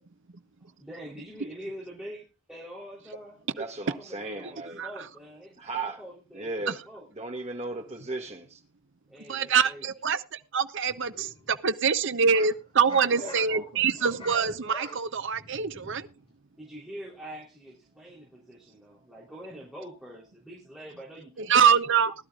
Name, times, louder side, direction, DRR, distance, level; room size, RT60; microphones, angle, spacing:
voice 1, 0.6-3.4 3.7-7.1 9.1-9.9 13.1-13.9 16.6-21.8, equal, ahead, 3.4 m, -45 dB
voice 2, 3.5-4.8 5.6-6.0 6.3-6.8 7.1-8.6, right 2 dB, 30° right, 2.0 m, -36 dB
voice 3, 9.3-16.1 21.4-22.1, right 6 dB, 55° right, 0.7 m, -25 dB
sound 1, 10.9-11.6 12.0-16.3, equal, 25° left, 6.2 m, -44 dB
20.0 x 11.5 x 2.4 m
head